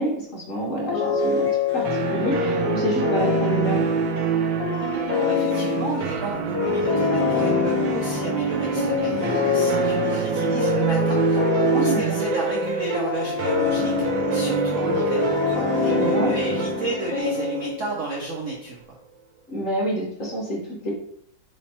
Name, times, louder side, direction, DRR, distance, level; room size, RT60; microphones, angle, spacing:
voice 1, 0.0-3.8 11.7-12.2 15.8-16.3 19.5-20.9, right 1 dB, 50° left, -2 dB, 1.1 m, -28 dB
sound 1, 0.9-18.1, left 6 dB, 80° left, 1.4 m, -26 dB
sound 2, 1.2-2.7 3.2-4.7 5.1-6.9 7.2-8.7 9.0-10.7 11.1-12.9 13.1-14.7 15.1-16.9, right 1 dB, 30° right, 1.4 m, -44 dB
sound 3, 1.9-18.6, right 6 dB, 85° right, 1.3 m, -26 dB
voice 2, 5.1-19.0, right 3 dB, 65° right, -2 dB, 0.7 m, -32 dB
3.4 x 3.2 x 4.2 m, 0.68 s
omnidirectional pair, 2.1 m